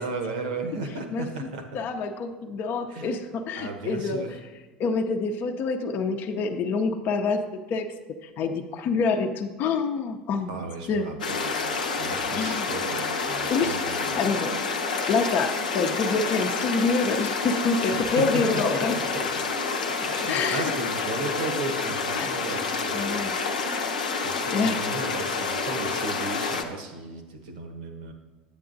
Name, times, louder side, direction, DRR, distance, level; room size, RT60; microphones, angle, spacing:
voice 1, 0.0-1.8 2.9-3.1 3.6-4.3 10.5-14.2 17.9-19.3 20.0-23.3 24.2-28.1, right 3 dB, 75° right, 5 dB, 1.1 m, -35 dB
voice 2, 1.1-1.5 1.7-4.2 4.8-7.4 7.7-7.9 8.2-10.6 10.9-11.1 12.4-12.7 13.5-13.8 14.2-14.5 15.1-19.0 20.3-20.7 22.2-22.6 22.9-23.3 24.5-24.8, left 4 dB, 50° left, 4 dB, 0.6 m, -26 dB
sound 1, 11.2-26.6, left 4 dB, 90° left, 0.7 m, -28 dB
10.0 x 8.4 x 2.6 m, 1.3 s
hypercardioid pair, 70°, 4 cm